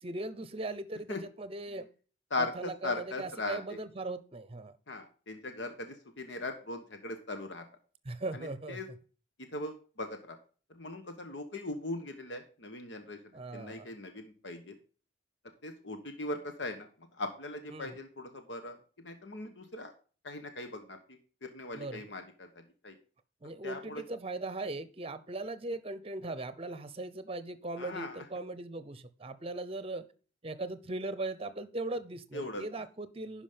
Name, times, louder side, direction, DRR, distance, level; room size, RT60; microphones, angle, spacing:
voice 1, 0.0-1.9 2.4-4.7 8.0-8.8 13.3-13.9 17.7-18.0 21.7-22.0 23.4-30.1 30.4-33.4, right 2 dB, 30° right, 13 dB, 0.7 m, -39 dB
voice 2, 2.3-3.8 4.9-7.6 8.3-8.9 9.4-10.4 10.7-13.2 13.5-14.7 15.6-16.9 17.1-19.9 20.2-22.5 22.8-23.0 23.6-24.0 27.8-28.3 32.3-32.6, left 2 dB, 70° left, 6 dB, 1.2 m, -39 dB
11.5 x 5.0 x 5.1 m, 0.39 s
head